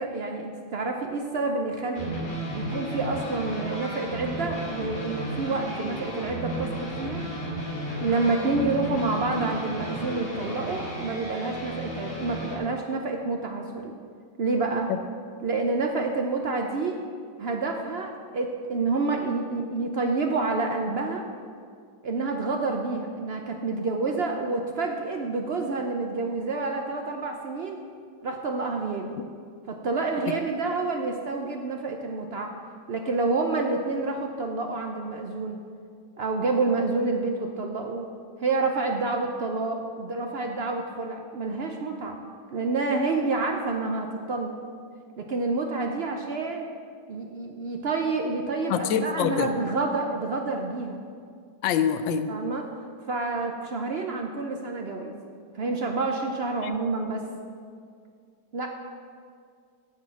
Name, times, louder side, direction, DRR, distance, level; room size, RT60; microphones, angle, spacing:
voice 1, 0.0-2.2 2.5-7.3 8.0-14.0 14.4-14.9 15.4-17.0 17.4-21.3 22.0-27.8 28.2-29.2 29.7-32.5 32.9-35.6 36.2-38.1 38.4-42.2 42.5-44.6 45.2-46.6 47.1-51.0 52.3-52.6 53.1-55.2 55.5-57.2 58.5-58.7, right 3 dB, 85° right, 3 dB, 0.5 m, -28 dB
sound 1, 1.9-12.6, equal, 35° left, 2.4 m, -34 dB
voice 2, 48.7-49.5 51.6-52.3 56.6-56.7, left 8 dB, 85° left, 9 dB, 1.3 m, -25 dB
9.4 x 6.3 x 7.7 m, 2.2 s
omnidirectional pair, 2.0 m